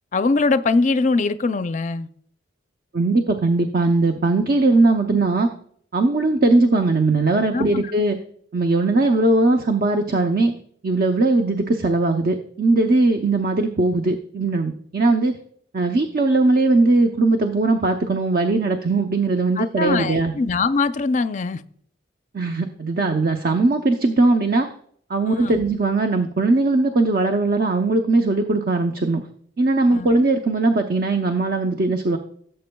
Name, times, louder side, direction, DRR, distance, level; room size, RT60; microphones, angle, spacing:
voice 1, 0.1-2.1 7.5-7.8 19.6-21.6 25.3-25.6 29.9-30.1, left 3 dB, 40° left, 0.4 m, -22 dB
voice 2, 2.9-5.5 5.9-8.2 8.5-10.5 10.8-15.3 15.7-20.3 22.3-24.7 25.1-29.2 29.6-32.2, right 2 dB, 50° right, 0.6 m, -19 dB
17.0 x 7.8 x 2.3 m
head